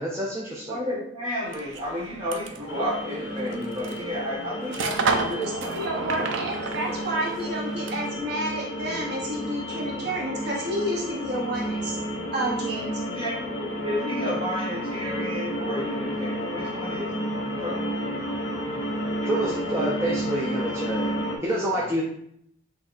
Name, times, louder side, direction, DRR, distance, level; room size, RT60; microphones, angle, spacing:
voice 1, 0.0-0.8 19.2-21.1 21.4-22.0, right 1 dB, 15° right, -5 dB, 0.5 m, -28 dB
voice 2, 0.7-6.3 6.9-7.0 13.0-17.1 17.6-17.9 21.7-21.8, left 1 dB, 30° right, -4 dB, 1.4 m, -32 dB
sound 1, 1.4-8.2, right 4 dB, 80° right, 0.5 m, -32 dB
sound 2, 2.7-21.4, equal, 90° left, 0.8 m, -31 dB
voice 3, 5.3-12.0 12.3-12.9 19.4-19.5, right 1 dB, 60° right, -2 dB, 0.8 m, -30 dB
5.8 x 2.7 x 2.4 m, 0.70 s
head